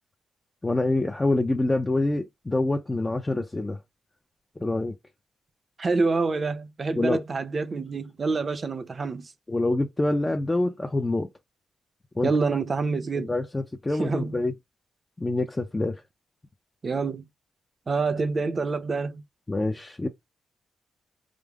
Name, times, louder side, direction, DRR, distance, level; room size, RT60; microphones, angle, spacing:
voice 1, 0.6-3.8 4.6-5.0 6.9-7.2 9.5-11.3 12.2-12.3 13.1-14.5 15.2-16.0 19.5-20.1, left 2 dB, 15° left, 0.5 m, -26 dB
voice 2, 5.8-9.3 12.2-13.3 14.0-14.4 16.8-17.3 17.9-19.2, right 4 dB, 35° right, 0.6 m, -27 dB
5.0 x 2.0 x 3.4 m
wide cardioid pair, 130°, 0 cm